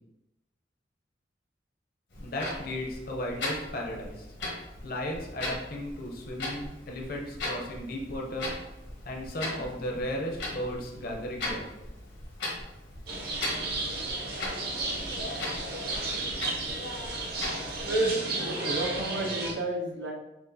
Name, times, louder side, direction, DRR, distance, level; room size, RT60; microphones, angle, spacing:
Clock, 2.1-18.1, left 2 dB, 80° left, 1.5 m, -39 dB
voice 1, 2.2-4.2 4.8-8.5 9.0-11.7, left 1 dB, 55° left, 0 dB, 0.8 m, -35 dB
sound 1, 13.1-19.5, right 2 dB, 60° right, 0.9 m, -32 dB
voice 2, 18.4-20.1, right 1 dB, 85° right, -1 dB, 0.9 m, -32 dB
6.0 x 2.4 x 2.8 m, 0.96 s
head